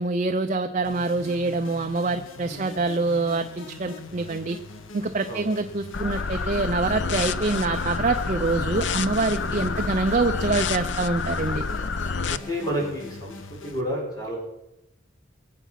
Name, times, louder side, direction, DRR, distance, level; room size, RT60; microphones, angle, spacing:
voice 1, 0.0-4.6 4.9-11.6, right 3 dB, 35° right, 7 dB, 0.6 m, -25 dB
sound 1, 0.8-13.8, left 2 dB, 90° left, 1.2 m, -42 dB
sound 2, 5.9-12.4, left 4 dB, 65° left, 0.6 m, -28 dB
sound 3, 6.0-12.6, right 2 dB, 5° right, 2.4 m, -46 dB
voice 2, 9.4-9.8 11.5-11.7 12.3-14.4, equal, 20° left, -2 dB, 5.1 m, -31 dB
22.0 x 8.3 x 5.8 m, 0.90 s
head